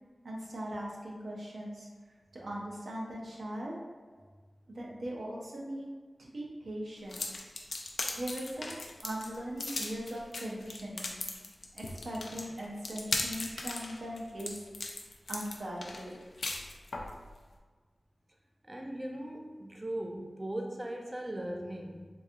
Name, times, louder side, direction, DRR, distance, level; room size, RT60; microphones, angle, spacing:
voice 1, 0.2-1.9 2.3-3.8 4.7-5.9 6.2-7.2 8.1-11.2 11.7-14.6 15.3-16.2, equal, 80° right, -3 dB, 0.7 m, -40 dB
sound 1, 7.1-17.1, left 2 dB, 90° left, 0.4 m, -38 dB
voice 2, 18.6-22.1, right 1 dB, 20° right, 2 dB, 0.3 m, -38 dB
3.8 x 2.5 x 2.7 m, 1.4 s
wide cardioid pair, 75°, 0 cm